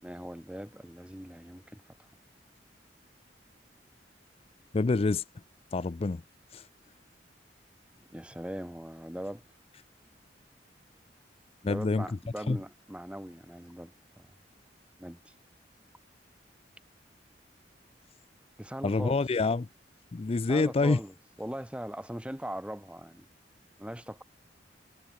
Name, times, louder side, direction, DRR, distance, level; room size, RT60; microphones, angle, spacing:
voice 1, 0.0-1.8 7.9-9.4 11.6-14.3 15.0-15.3 18.6-19.2 20.5-23.3 23.8-24.2, equal, 5° right, 1.5 m, -40 dB
voice 2, 4.7-5.2 5.7-6.2 6.5-6.7 11.6-12.1 12.5-12.6 18.8-19.7 20.1-21.0, left 3 dB, 35° left, 0.4 m, -27 dB
head